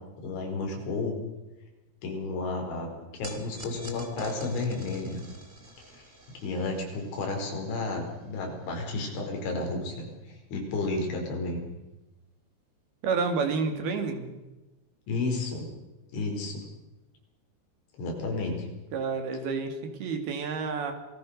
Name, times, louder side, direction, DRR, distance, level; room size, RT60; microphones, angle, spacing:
voice 1, 0.2-1.2 2.0-5.2 5.9-6.1 6.3-11.6 15.1-15.7 16.1-16.6 18.0-18.7, left 3 dB, 75° left, 1 dB, 7.1 m, -32 dB
sound 1, 3.2-9.6, right 2 dB, 20° right, 2.3 m, -49 dB
voice 2, 13.0-14.3 18.9-20.9, right 5 dB, 60° right, 6 dB, 4.1 m, -29 dB
28.0 x 19.5 x 6.7 m, 1.0 s
omnidirectional pair, 5.4 m